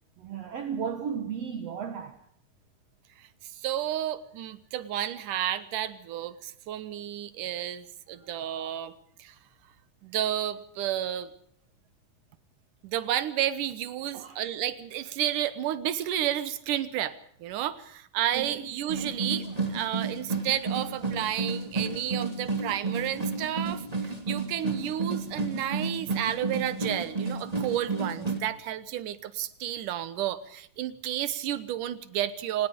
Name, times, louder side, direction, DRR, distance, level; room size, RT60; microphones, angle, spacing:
voice 1, 0.2-2.2 8.2-8.3 14.1-14.4 18.3-18.7, right 7 dB, 60° right, 2.0 m, -35 dB
voice 2, 3.6-8.9 9.2-9.3 10.0-11.3 12.8-32.7, right 11 dB, 75° right, 2.6 m, -31 dB
sound 1, 18.9-28.4, right 4 dB, 10° right, 2.4 m, -31 dB
27.0 x 19.5 x 5.3 m
omnidirectional pair, 3.8 m